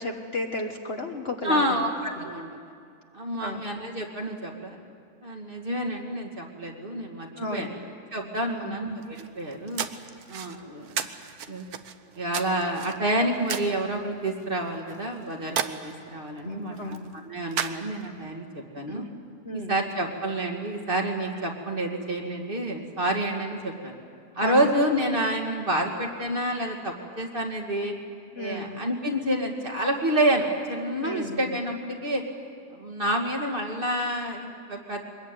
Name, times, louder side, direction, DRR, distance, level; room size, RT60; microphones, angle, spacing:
voice 1, 0.0-1.9 2.2-2.3 3.4-3.6 7.4-7.7 8.5-8.8 16.4-17.1 18.9-19.1 19.4-19.8 24.4-24.7 28.3-28.8 31.0-31.6, left 1 dB, 40° left, 3 dB, 1.5 m, -33 dB
voice 2, 1.4-2.5 3.1-4.8 5.2-7.8 8.1-9.9 10.3-11.1 11.5-11.7 12.2-19.1 19.5-24.0 24.3-27.9 28.4-32.2 32.7-35.1, right 1 dB, 35° right, 1 dB, 2.5 m, -28 dB
sound 1, 9.0-18.3, right 8 dB, 70° right, 1.4 m, -37 dB
23.0 x 21.0 x 9.3 m, 2.3 s
omnidirectional pair, 1.7 m